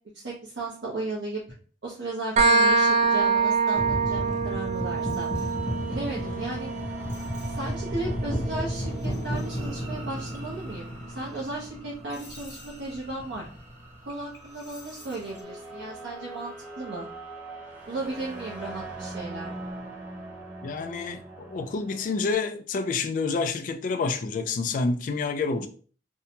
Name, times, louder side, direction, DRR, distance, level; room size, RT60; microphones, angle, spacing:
voice 1, 0.1-1.4 1.8-5.3 5.9-6.7 7.5-13.5 14.0-17.1 17.9-19.5, right 2 dB, 85° right, 0.7 m, -35 dB
sound 1, 2.4-9.8, right 4 dB, 40° right, 0.4 m, -26 dB
sound 2, 3.7-15.4, equal, 15° left, 0.7 m, -34 dB
sound 3, 5.3-22.3, right 2 dB, 10° right, 1.0 m, -43 dB
voice 2, 20.6-25.7, left 4 dB, 45° left, 0.3 m, -28 dB
2.6 x 2.1 x 2.8 m
head